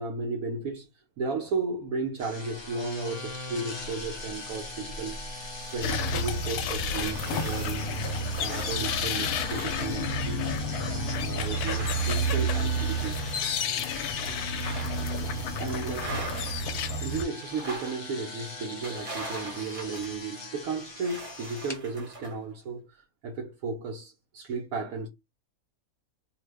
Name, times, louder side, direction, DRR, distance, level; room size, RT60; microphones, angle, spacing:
voice 1, 0.0-7.9 8.4-10.5 11.2-13.4 15.6-16.3 17.0-25.1, right 4 dB, 75° right, 1.0 m, -34 dB
sound 1, 2.2-21.8, left 2 dB, 30° left, 0.4 m, -41 dB
sound 2, 3.8-4.7 5.1-9.7 10.3-10.4 11.4-13.9 14.5-15.0 15.3-15.5 16.0-16.7 17.4-18.0 18.8-20.2 21.0-22.4, right 2 dB, 35° right, 0.6 m, -43 dB
sound 3, 5.8-17.2, left 1 dB, 90° left, 1.1 m, -30 dB
2.8 x 2.0 x 3.3 m
omnidirectional pair, 1.6 m